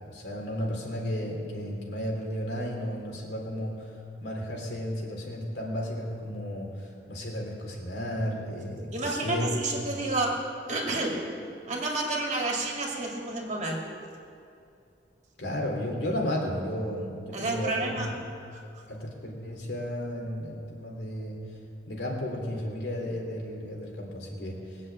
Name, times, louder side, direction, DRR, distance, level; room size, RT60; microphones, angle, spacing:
voice 1, 0.1-3.9 4.2-8.9 9.2-9.5 15.4-18.2 18.9-21.4 21.9-24.8, equal, 70° left, -1 dB, 3.4 m, -33 dB
voice 2, 8.9-11.2 11.7-13.8 17.3-18.1 18.5-18.8, right 2 dB, 40° right, -1 dB, 2.4 m, -30 dB
20.5 x 7.6 x 8.6 m, 2.6 s
head